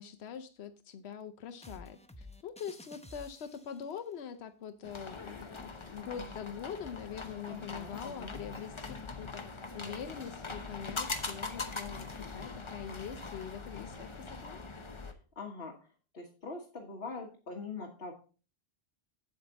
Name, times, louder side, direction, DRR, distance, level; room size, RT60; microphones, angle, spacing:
voice 1, 0.0-9.4 9.7-14.6, left 7 dB, 90° left, 8 dB, 1.0 m, -43 dB
sound 1, 1.6-3.9, left 2 dB, 10° left, 0.5 m, -52 dB
sound 2, 4.8-15.1, left 3 dB, 30° left, 0.9 m, -42 dB
voice 2, 7.5-8.4 15.4-15.7 16.1-18.1, left 4 dB, 70° left, -1 dB, 1.6 m, -43 dB
8.0 x 7.9 x 3.9 m, 0.36 s
omnidirectional pair, 1.1 m